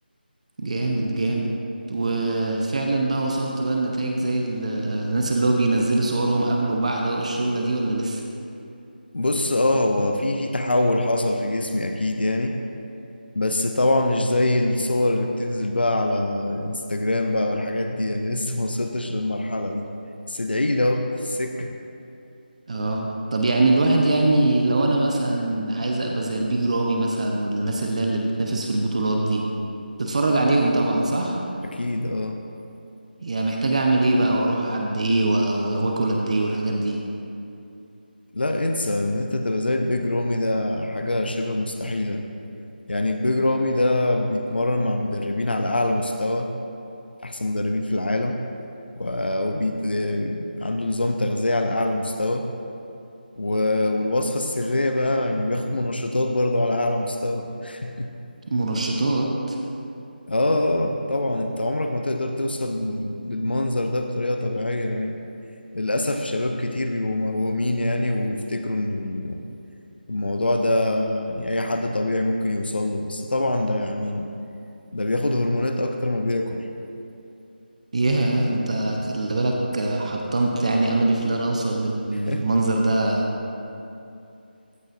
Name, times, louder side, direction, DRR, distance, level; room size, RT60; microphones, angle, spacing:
voice 1, 0.6-1.5 1.9-8.2 22.7-29.4 30.0-31.4 33.2-37.0 58.5-59.6 77.9-83.2, right 2 dB, 40° right, 0 dB, 0.8 m, -23 dB
voice 2, 9.1-12.5 13.3-19.9 20.3-21.7 31.7-32.4 38.3-42.2 42.9-46.5 47.2-48.4 49.0-52.5 53.4-58.1 60.3-65.2 65.7-69.4 70.1-74.3 74.9-76.6 82.1-82.5, left 1 dB, 70° left, 4 dB, 0.6 m, -24 dB
14.5 x 6.4 x 2.6 m, 2.7 s
figure-of-eight pair, 160°, 6 cm